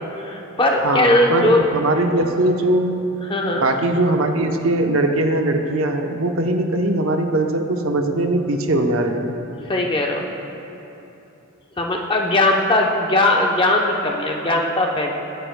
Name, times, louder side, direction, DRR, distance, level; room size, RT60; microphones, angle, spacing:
voice 1, 0.2-1.6 3.3-3.7 9.7-10.2 11.8-15.1, left 1 dB, 20° left, 0 dB, 0.7 m, -19 dB
voice 2, 0.8-3.0 3.5-9.3, right 1 dB, 65° right, 4 dB, 0.8 m, -20 dB
22.0 x 9.3 x 2.2 m, 2.9 s
head